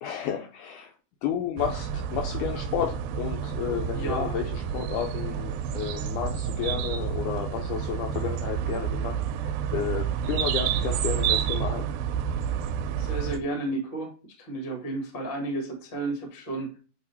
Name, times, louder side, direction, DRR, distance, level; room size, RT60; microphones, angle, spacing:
voice 1, 0.0-0.9 1.2-9.2 9.4-11.9, left 9 dB, 80° left, 3 dB, 1.9 m, -32 dB
sound 1, 1.6-13.4, right 8 dB, 90° right, 2.3 m, -29 dB
voice 2, 3.9-4.4 13.0-14.1 14.4-16.8, right 2 dB, 35° left, 1 dB, 0.8 m, -32 dB
8.1 x 2.9 x 4.1 m, 0.36 s
omnidirectional pair, 4.1 m